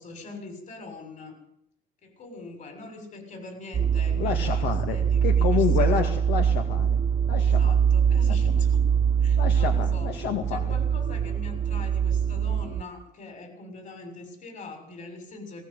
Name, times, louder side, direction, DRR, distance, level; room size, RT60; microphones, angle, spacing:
voice 1, 0.0-1.4 2.0-6.1 7.4-8.8 9.2-10.1 10.5-15.6, left 3 dB, 50° left, 6 dB, 6.9 m, -42 dB
sound 1, 3.7-12.8, right 7 dB, 35° right, 1.2 m, -23 dB
voice 2, 4.2-5.0 5.2-7.0 7.3-7.8 8.3-8.4 9.4-10.7, left 8 dB, 80° left, 5 dB, 2.1 m, -29 dB
19.0 x 18.0 x 8.2 m, 0.74 s
cardioid pair, 110°, 17 cm